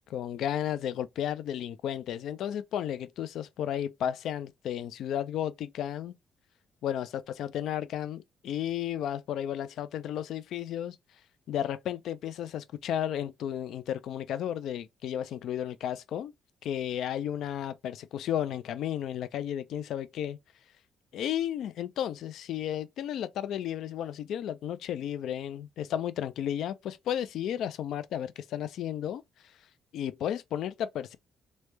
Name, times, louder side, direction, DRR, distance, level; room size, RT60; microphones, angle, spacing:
voice 1, 0.1-6.1 6.8-11.0 11.5-16.3 16.6-20.4 21.1-29.2 29.9-31.2, left 10 dB, 75° left, 0.3 m, -33 dB
3.1 x 2.1 x 3.2 m
cardioid pair, 90°, 0 cm